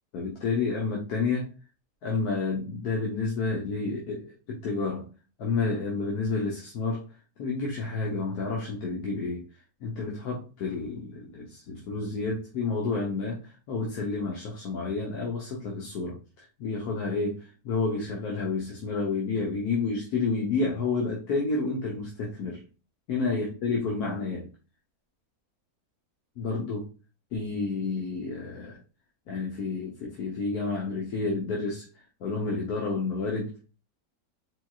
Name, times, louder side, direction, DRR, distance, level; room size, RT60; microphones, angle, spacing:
voice 1, 0.1-1.5 2.0-5.1 5.4-7.0 7.4-9.4 9.8-13.4 13.7-22.6 23.1-24.5 26.4-26.9 27.3-28.8 29.3-31.9 32.2-33.5, left 3 dB, 90° left, 1.5 m, -30 dB
4.5 x 4.0 x 2.4 m
omnidirectional pair, 1.6 m